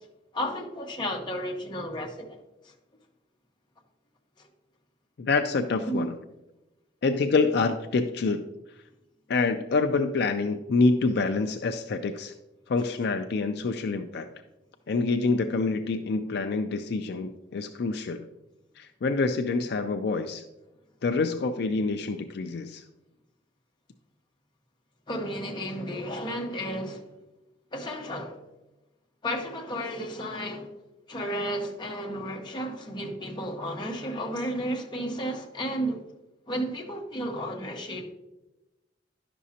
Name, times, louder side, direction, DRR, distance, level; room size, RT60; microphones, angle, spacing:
voice 1, 0.3-2.4 2.6-2.7 5.9-6.1 25.1-27.0 27.7-28.4 29.2-30.7 31.1-36.0 36.5-38.1, equal, 25° left, 0 dB, 1.1 m, -33 dB
voice 2, 5.2-6.1 7.0-8.4 9.3-12.3 12.7-14.3 14.9-18.3 18.8-20.4 21.0-22.8, left 3 dB, 65° left, 6 dB, 0.4 m, -26 dB
11.0 x 6.1 x 2.8 m, 1.0 s
head